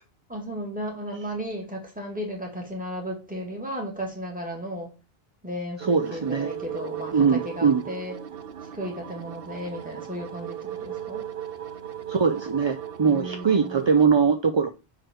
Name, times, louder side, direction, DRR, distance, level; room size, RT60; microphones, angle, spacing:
voice 1, 0.3-4.9 5.4-8.1 8.7-11.2 13.0-13.9, equal, 10° right, 0 dB, 2.3 m, -35 dB
sound 1, 5.8-14.1, right 10 dB, 70° right, 0.9 m, -37 dB
voice 2, 5.9-6.5 7.1-7.8 12.1-14.7, right 6 dB, 35° right, 7 dB, 0.5 m, -21 dB
6.0 x 4.8 x 4.5 m, 0.29 s
omnidirectional pair, 1.0 m